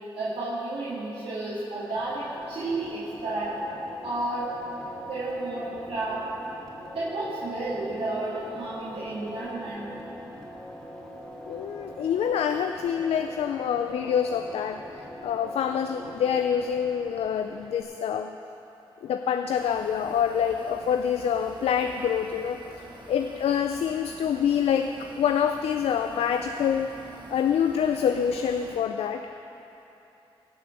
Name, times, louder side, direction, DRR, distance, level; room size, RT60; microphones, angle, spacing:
voice 1, 0.1-3.5 4.0-4.5 5.1-6.2 6.9-9.9, right 2 dB, 75° right, -9 dB, 2.5 m, -31 dB
Mystic Ambient (vinyl), 1.9-17.8, equal, 5° left, 3.0 m, -43 dB
voice 2, 11.5-18.3 19.0-22.6 23.1-26.9 27.3-29.3, left 8 dB, 85° left, 6 dB, 0.5 m, -26 dB
sound 1, 19.5-28.8, right 2 dB, 50° right, 1.8 m, -47 dB
17.5 x 6.2 x 7.3 m, 3.0 s
cardioid pair, 55°, 10 cm